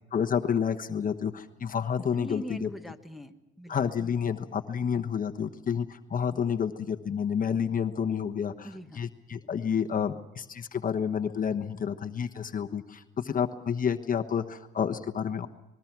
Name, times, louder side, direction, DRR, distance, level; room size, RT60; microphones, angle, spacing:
voice 1, 0.1-2.7 3.7-8.7 8.9-15.5, left 7 dB, 45° left, 6 dB, 1.2 m, -29 dB
voice 2, 2.1-3.9 8.6-9.0, equal, ahead, 4 dB, 1.5 m, -42 dB
26.0 x 21.0 x 6.1 m, 1.0 s
cardioid pair, 90°, 20 cm